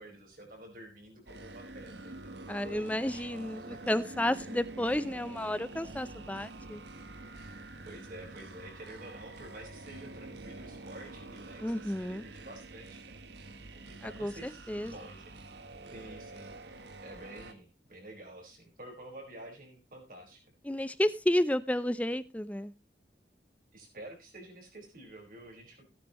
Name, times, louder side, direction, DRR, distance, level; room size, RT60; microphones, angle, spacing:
voice 1, 0.0-3.8 7.3-7.5 7.8-15.4 15.9-20.4 23.7-25.8, right 1 dB, 50° right, 1 dB, 5.0 m, -49 dB
sound 1, 1.3-17.5, right 2 dB, 75° right, 1.1 m, -47 dB
voice 2, 2.5-6.8 11.6-12.2 14.0-14.9 20.6-22.7, left 1 dB, 10° left, 15 dB, 0.5 m, -31 dB
16.5 x 9.8 x 3.0 m, 0.26 s
head